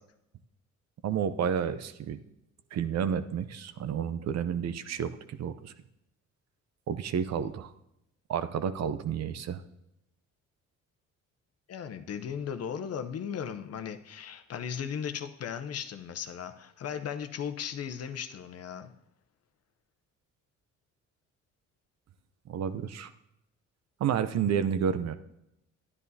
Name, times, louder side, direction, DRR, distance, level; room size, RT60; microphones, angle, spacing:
voice 1, 1.0-2.2 2.7-5.7 6.9-7.7 8.3-9.6 22.5-23.1 24.0-25.1, right 8 dB, 60° right, 12 dB, 0.6 m, -30 dB
voice 2, 11.7-18.9, left 8 dB, 55° left, 9 dB, 0.7 m, -37 dB
11.0 x 10.0 x 2.7 m, 0.83 s
cardioid pair, 90°, 30 cm